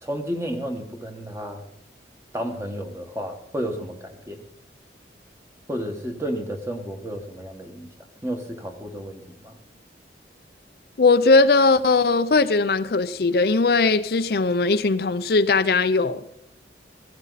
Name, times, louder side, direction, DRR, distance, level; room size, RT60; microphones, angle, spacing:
voice 1, 0.0-1.6 2.3-4.4 5.7-7.9 8.2-9.6, equal, 15° right, 1.5 m, -32 dB
voice 2, 11.0-16.2, left 3 dB, 55° left, 0.5 m, -19 dB
16.0 x 15.0 x 4.1 m
head